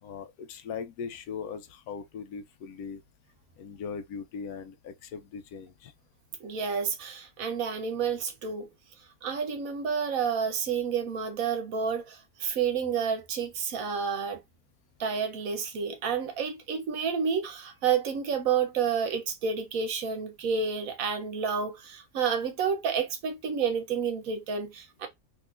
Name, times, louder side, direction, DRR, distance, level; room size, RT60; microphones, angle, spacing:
voice 1, 0.0-3.0 3.6-5.9, left 6 dB, 75° left, 1.0 m, -39 dB
voice 2, 6.4-8.7 9.2-14.4 15.0-25.1, right 6 dB, 70° right, 1.1 m, -30 dB
3.8 x 3.0 x 2.5 m
omnidirectional pair, 1.6 m